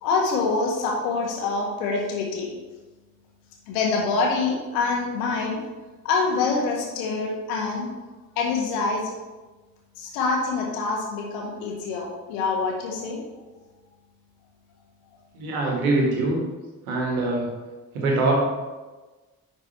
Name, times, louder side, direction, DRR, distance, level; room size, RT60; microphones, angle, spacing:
voice 1, 0.0-2.6 3.7-5.6 6.0-7.9 8.3-9.1 10.0-13.2, left 4 dB, 65° left, 0 dB, 1.6 m, -25 dB
voice 2, 15.3-16.4 16.9-17.5 17.9-18.3, right 2 dB, 75° right, -1 dB, 1.7 m, -23 dB
10.5 x 4.4 x 4.2 m, 1.2 s
figure-of-eight pair, 40°, 43 cm